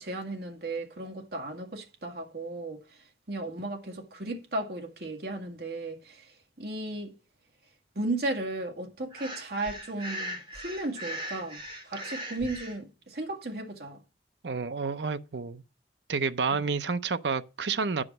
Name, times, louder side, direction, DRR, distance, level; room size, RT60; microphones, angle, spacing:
voice 1, 0.0-2.8 3.3-6.3 6.6-7.1 8.0-14.0, right 2 dB, 60° right, 2.0 m, -35 dB
Breathing, 9.1-12.8, equal, 30° right, 2.6 m, -39 dB
voice 2, 14.4-15.6 16.1-18.0, right 4 dB, 75° right, 0.7 m, -29 dB
10.5 x 5.0 x 6.2 m
head